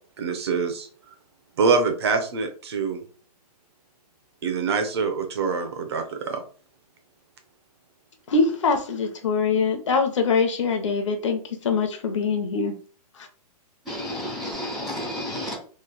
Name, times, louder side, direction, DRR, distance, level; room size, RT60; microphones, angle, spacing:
voice 1, 0.2-0.9 1.6-3.0 4.4-6.4, right 4 dB, 40° right, 0.7 m, -24 dB
voice 2, 8.3-12.8, left 4 dB, 50° left, 0.8 m, -23 dB
voice 3, 13.8-15.5, left 1 dB, ahead, 0.3 m, -31 dB
3.2 x 2.5 x 3.8 m
hypercardioid pair, 175°, 20 cm